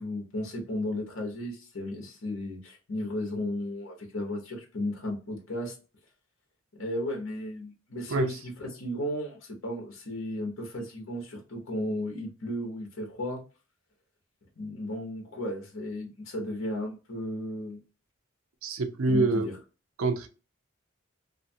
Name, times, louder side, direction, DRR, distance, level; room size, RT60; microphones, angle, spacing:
voice 1, 0.0-5.7 6.8-13.4 14.6-17.8 19.1-19.5, left 1 dB, 70° left, 1.0 m, -34 dB
voice 2, 8.1-8.4 18.6-19.5 20.0-20.3, right 3 dB, 80° right, 0.5 m, -26 dB
2.6 x 2.4 x 2.6 m
head